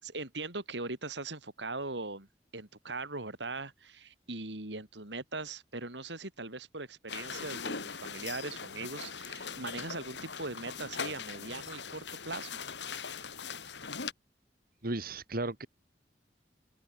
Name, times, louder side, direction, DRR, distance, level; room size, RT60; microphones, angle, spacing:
voice 1, 0.0-2.3 2.5-12.6, right 3 dB, 90° right, 4.2 m, -40 dB
sound 1, 7.1-14.1, left 5 dB, 90° left, 2.9 m, -40 dB
voice 2, 14.8-15.7, right 2 dB, 55° right, 2.2 m, -34 dB
open air
head